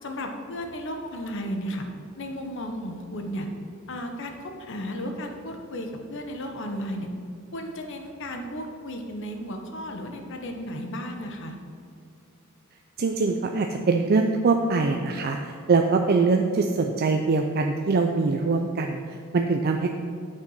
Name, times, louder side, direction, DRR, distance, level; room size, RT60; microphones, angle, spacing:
voice 1, 0.0-1.9 2.2-3.5 3.9-7.1 7.5-11.6, equal, 65° left, 4 dB, 1.0 m, -34 dB
voice 2, 13.0-19.9, right 4 dB, 50° right, 4 dB, 0.5 m, -23 dB
8.7 x 6.6 x 5.6 m, 2.4 s
head